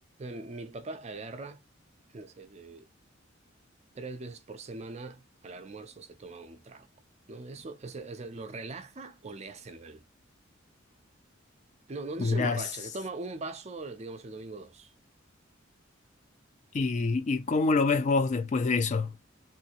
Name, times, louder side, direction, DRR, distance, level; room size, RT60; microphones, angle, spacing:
voice 1, 0.0-1.6 2.1-2.9 3.9-6.9 7.3-10.0 11.9-14.9, right 3 dB, 35° right, 0.5 m, -41 dB
voice 2, 12.2-12.6 16.7-19.1, left 4 dB, 35° left, 0.3 m, -26 dB
3.1 x 2.6 x 2.9 m
head